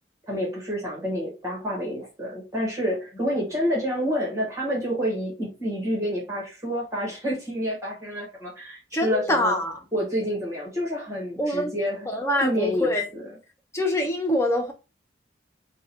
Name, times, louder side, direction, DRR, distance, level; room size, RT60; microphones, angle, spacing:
voice 1, 0.3-9.6 9.9-12.0 12.4-12.9, equal, 15° right, 1.3 m, -28 dB
voice 2, 8.9-9.8 11.4-11.7 12.0-13.1 13.7-14.7, left 1 dB, 15° left, 0.5 m, -24 dB
3.7 x 2.2 x 4.1 m
head